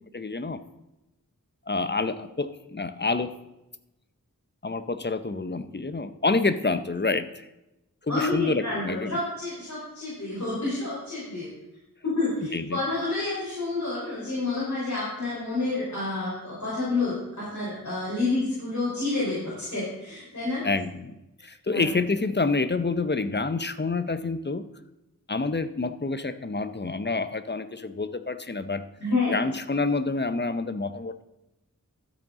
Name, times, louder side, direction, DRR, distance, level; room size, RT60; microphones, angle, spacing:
voice 1, 0.1-0.6 1.7-3.4 4.6-7.5 8.0-9.2 12.5-12.8 20.6-21.2 21.4-24.7 25.3-28.8 29.3-31.2, left 3 dB, 30° left, 12 dB, 0.6 m, -28 dB
voice 2, 8.1-11.5 12.0-20.6 21.7-21.8 29.0-29.4, left 3 dB, 55° left, -8 dB, 4.0 m, -29 dB
12.5 x 8.2 x 3.7 m, 0.95 s
wide cardioid pair, 45°, 34 cm